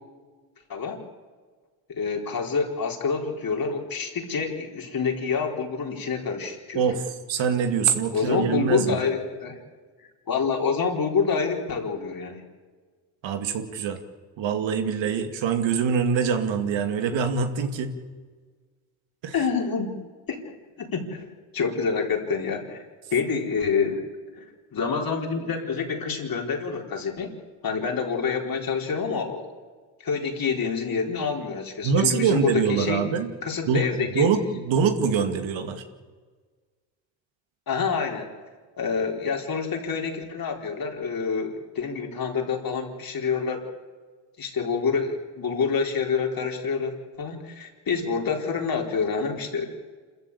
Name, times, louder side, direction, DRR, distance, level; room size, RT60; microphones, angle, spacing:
voice 1, 0.7-1.0 2.0-6.9 8.1-9.6 10.3-12.4 19.3-20.0 20.3-22.8 23.1-24.0 24.4-24.5 24.7-27.3 27.6-29.5 30.0-33.0 33.4-34.3 37.7-38.3 38.8-43.6 44.4-49.7, left 5 dB, 45° left, 2 dB, 4.3 m, -27 dB
voice 2, 6.7-9.0 13.2-14.0 14.4-17.9 19.2-19.3 31.8-33.3 33.7-35.8, right 6 dB, 70° right, 7 dB, 2.5 m, -24 dB
27.0 x 14.0 x 8.5 m, 1.5 s
supercardioid pair, 70°, 47 cm